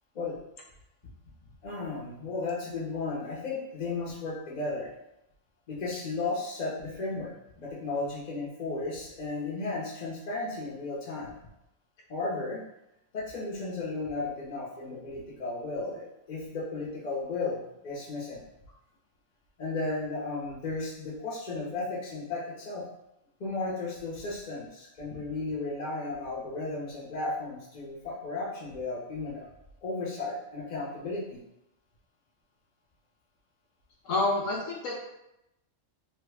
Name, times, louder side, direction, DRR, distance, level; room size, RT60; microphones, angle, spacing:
voice 1, 1.6-4.9 5.7-11.3 12.1-12.6 13.1-18.4 19.6-22.8 23.4-29.5 29.8-31.4, left 3 dB, 35° left, -5 dB, 0.9 m, -34 dB
voice 2, 34.0-35.0, left 2 dB, 75° left, -2 dB, 1.0 m, -28 dB
3.2 x 2.3 x 3.3 m, 0.87 s
omnidirectional pair, 1.3 m